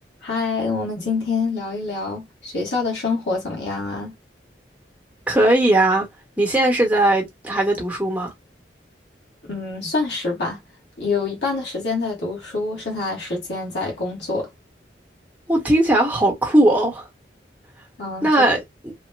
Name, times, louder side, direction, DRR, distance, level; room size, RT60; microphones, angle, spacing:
voice 1, 0.2-4.1 9.5-10.6 11.0-14.5 18.0-18.3, left 3 dB, 75° left, 1.2 m, -26 dB
voice 2, 5.3-6.1 6.4-8.3 15.5-17.1 18.2-18.9, right 1 dB, 10° right, 0.9 m, -18 dB
3.0 x 2.0 x 3.2 m
head